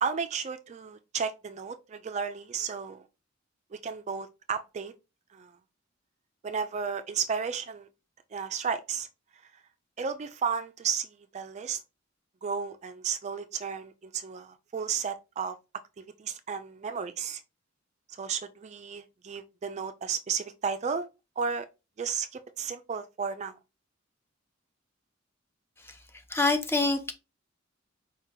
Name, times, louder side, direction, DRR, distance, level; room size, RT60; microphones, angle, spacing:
voice 1, 0.0-3.1 3.7-4.9 5.3-5.6 6.4-7.9 8.3-9.1 10.0-11.8 12.4-15.6 16.2-17.4 18.1-21.1 21.4-21.7 22.0-23.6, right 6 dB, 35° right, 0.4 m, -33 dB
voice 2, 26.3-27.1, left 3 dB, 10° left, 0.7 m, -25 dB
4.8 x 2.8 x 3.6 m
head